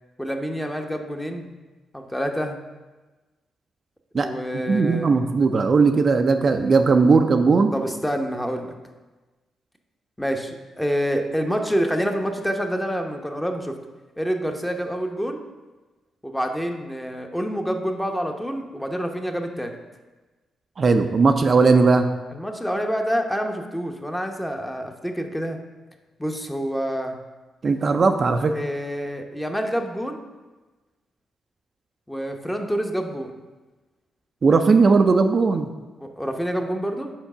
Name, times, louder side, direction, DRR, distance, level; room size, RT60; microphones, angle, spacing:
voice 1, 0.2-1.5 1.9-2.6 4.1-5.1 7.7-8.7 10.2-13.7 14.2-15.4 16.2-19.8 22.3-25.6 26.2-27.1 28.5-30.2 32.1-33.3 36.0-37.1, equal, 5° left, 4 dB, 0.8 m, -27 dB
voice 2, 4.7-7.7 20.8-22.1 27.6-28.6 34.4-35.7, right 4 dB, 50° right, 6 dB, 0.4 m, -18 dB
4.7 x 4.5 x 5.9 m, 1.2 s
supercardioid pair, 60°, 0 cm